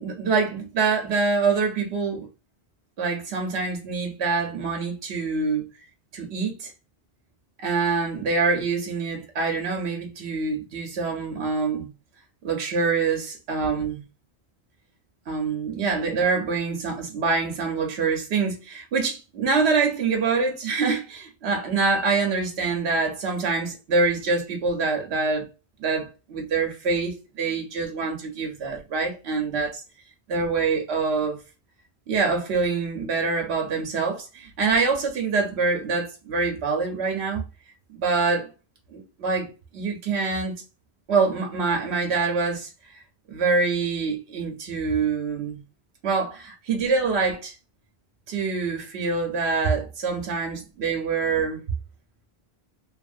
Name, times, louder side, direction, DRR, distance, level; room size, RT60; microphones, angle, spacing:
voice 1, 0.0-2.3 3.0-5.7 6.1-6.7 7.6-11.9 12.4-14.0 15.3-25.5 25.8-29.8 30.3-31.4 32.1-37.4 37.9-38.5 38.9-40.6 41.1-42.7 43.3-45.6 46.0-47.5 48.3-51.6, right 4 dB, 80° right, 1.0 m, -25 dB
2.8 x 2.5 x 2.5 m
omnidirectional pair, 1.1 m